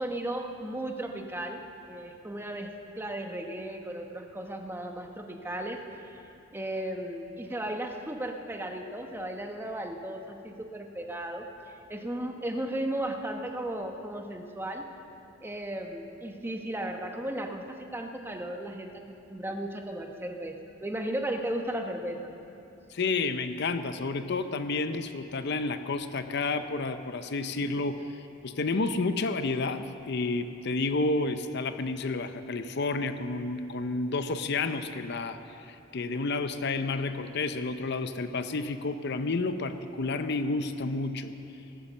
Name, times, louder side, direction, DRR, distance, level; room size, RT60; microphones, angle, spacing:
voice 1, 0.0-1.6 1.9-6.2 6.5-11.5 11.9-14.8 15.4-22.3, right 1 dB, 10° right, 3 dB, 0.9 m, -35 dB
voice 2, 22.9-28.0 28.4-41.3, left 3 dB, 55° left, 10 dB, 0.6 m, -30 dB
18.5 x 8.6 x 7.2 m, 2.8 s
head